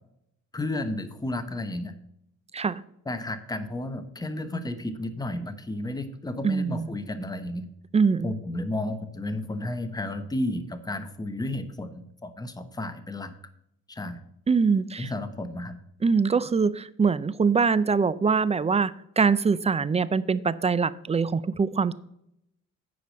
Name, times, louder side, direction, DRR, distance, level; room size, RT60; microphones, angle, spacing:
voice 1, 0.5-1.9 3.1-7.7 8.2-13.3 13.9-14.2 15.0-15.7, left 1 dB, 15° left, 9 dB, 1.0 m, -32 dB
voice 2, 6.4-6.9 7.9-8.3 14.5-15.1 16.0-21.9, right 5 dB, 20° right, 17 dB, 0.4 m, -23 dB
9.5 x 5.0 x 6.3 m, 0.76 s
cardioid pair, 90°, 30 cm